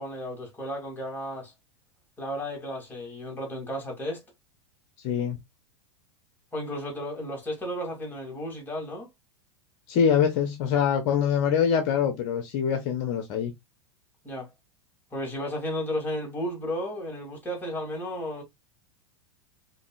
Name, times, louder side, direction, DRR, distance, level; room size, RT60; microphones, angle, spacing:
voice 1, 0.0-1.5 2.2-4.2 6.5-9.1 14.2-14.5 15.1-18.4, equal, 15° left, 2.3 m, -33 dB
voice 2, 5.0-5.4 9.9-13.5, left 7 dB, 50° left, 0.8 m, -24 dB
5.1 x 2.7 x 2.3 m
hypercardioid pair, 95°, 15 cm